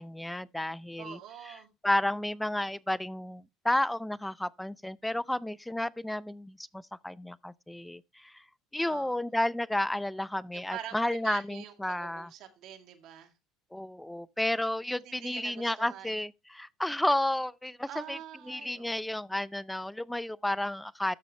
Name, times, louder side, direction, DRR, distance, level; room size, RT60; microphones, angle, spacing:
voice 1, 0.0-1.2 1.8-8.4 8.7-12.3 13.7-18.2 18.5-21.1, left 1 dB, 5° left, 0.4 m, -32 dB
voice 2, 1.0-1.7 8.8-9.2 10.5-13.3 15.0-16.1 17.9-18.9, right 10 dB, 60° right, 2.1 m, -45 dB
13.5 x 5.5 x 3.1 m
supercardioid pair, 110°, 0 cm